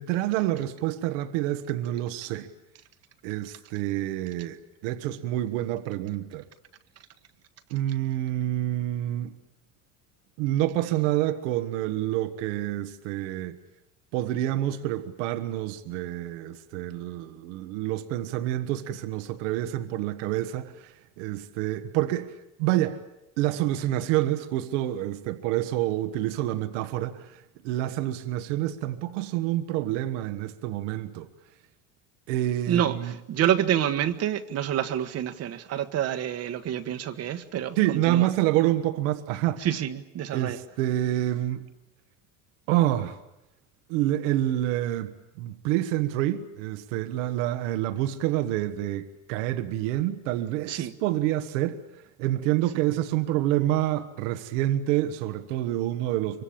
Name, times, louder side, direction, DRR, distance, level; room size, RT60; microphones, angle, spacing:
voice 1, 0.0-2.5 3.2-6.4 7.7-9.3 10.4-13.6 14.1-23.0 23.4-31.3 32.3-33.2 37.7-39.6 40.3-41.6 42.7-43.2 43.9-56.4, right 14 dB, 80° right, 1.6 m, -28 dB
voice 2, 33.3-38.3 39.6-40.6 50.7-50.9, right 10 dB, 45° right, 1.4 m, -27 dB
24.5 x 24.0 x 8.7 m
supercardioid pair, 125°, 36 cm